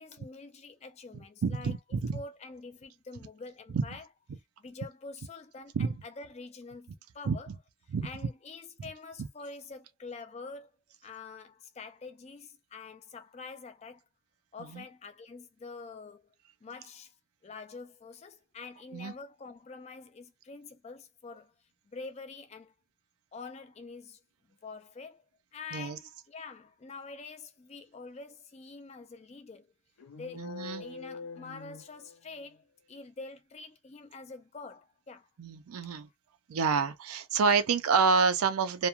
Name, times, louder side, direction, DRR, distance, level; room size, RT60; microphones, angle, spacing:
voice 1, 0.0-4.0 4.6-7.5 8.0-10.7 11.0-14.0 14.5-16.2 16.6-17.1 17.4-21.5 21.9-22.7 23.3-24.2 24.6-25.2 25.5-29.7 30.2-30.5 30.8-35.3 35.8-36.0, left 4 dB, 30° left, 0.3 m, -46 dB
voice 2, 1.4-2.2 3.7-3.9 5.7-6.0 7.3-7.5 7.9-8.1 9.2-9.3 14.6-14.8 18.9-19.1 25.7-26.0 30.4-30.9 35.4-36.1 36.5-38.9, right 5 dB, 90° right, 0.4 m, -28 dB
sound 1, 30.0-32.5, left 5 dB, 90° left, 0.5 m, -45 dB
3.0 x 2.1 x 2.3 m
head